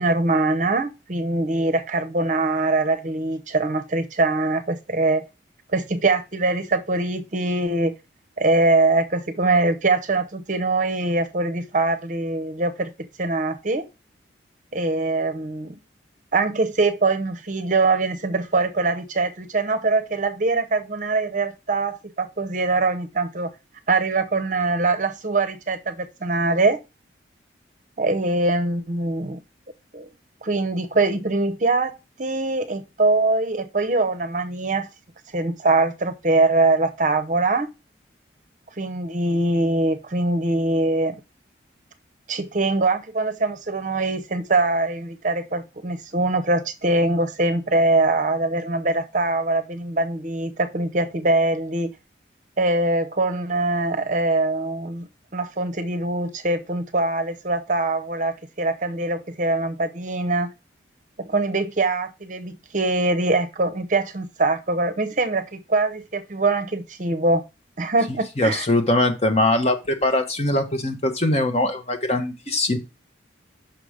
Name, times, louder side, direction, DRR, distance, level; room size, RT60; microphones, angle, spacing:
voice 1, 0.0-5.2 5.7-7.9 8.4-12.9 13.2-13.8 14.7-15.7 16.3-23.5 23.9-26.8 28.0-29.4 29.9-30.1 30.4-34.9 35.3-37.7 38.8-41.2 42.3-51.9 52.6-55.1 55.3-60.5 61.2-67.4 67.8-68.7, right 2 dB, 40° right, 0.7 m, -23 dB
voice 2, 68.4-72.8, left 1 dB, 35° left, 1.2 m, -21 dB
6.0 x 4.9 x 5.0 m
head